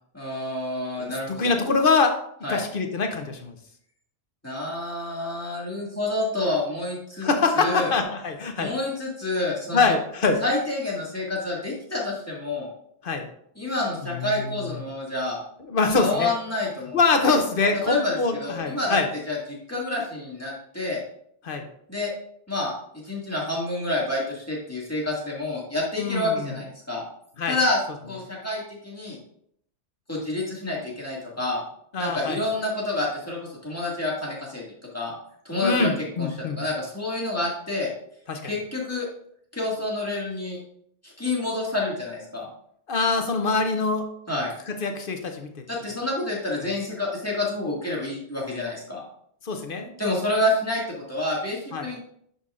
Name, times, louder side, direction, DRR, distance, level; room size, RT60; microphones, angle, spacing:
voice 1, 0.1-1.5 2.4-2.6 4.4-7.3 7.5-7.9 8.6-10.0 10.4-12.7 13.6-15.4 15.9-17.0 17.2-17.4 17.9-19.0 19.3-19.4 19.7-21.0 21.9-22.1 22.5-22.7 23.0-27.0 27.5-27.8 28.1-29.2 30.1-31.6 32.0-34.6 34.9-35.1 35.4-35.9 36.2-36.3 36.6-37.9 38.4-39.1 39.5-40.6 41.0-42.5 44.3-44.5 45.7-49.0 50.0-52.0, left 2 dB, 15° left, -5 dB, 2.0 m, -28 dB
voice 2, 1.0-2.2 2.5-3.6 7.2-8.7 9.7-10.4 13.0-13.3 14.0-14.6 15.7-16.3 16.9-19.1 21.4-21.6 26.0-26.6 27.4-27.6 31.9-32.4 35.6-36.6 38.3-38.5 42.9-44.1 44.7-45.5 49.4-49.9 51.7-51.9, left 4 dB, 55° left, 6 dB, 1.0 m, -24 dB
10.0 x 5.5 x 2.5 m, 0.69 s
omnidirectional pair, 1.1 m